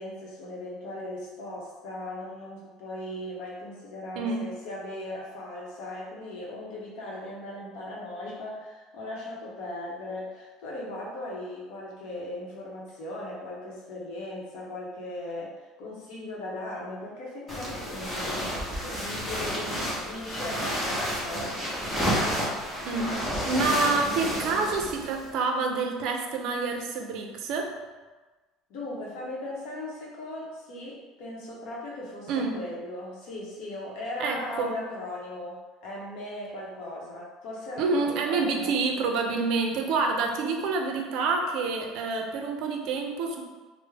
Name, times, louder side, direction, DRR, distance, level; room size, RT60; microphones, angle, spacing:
voice 1, 0.0-22.0 28.7-38.7, left 1 dB, 65° left, -3 dB, 0.8 m, -38 dB
voice 2, 4.2-4.5 22.9-23.2 23.5-27.7 32.3-32.6 34.2-34.7 37.8-43.4, right 4 dB, 55° right, 2 dB, 0.4 m, -27 dB
sound 1, 17.5-25.3, equal, 10° left, 0.7 m, -30 dB
3.5 x 2.0 x 3.2 m, 1.3 s
cardioid pair, 165°, 0 cm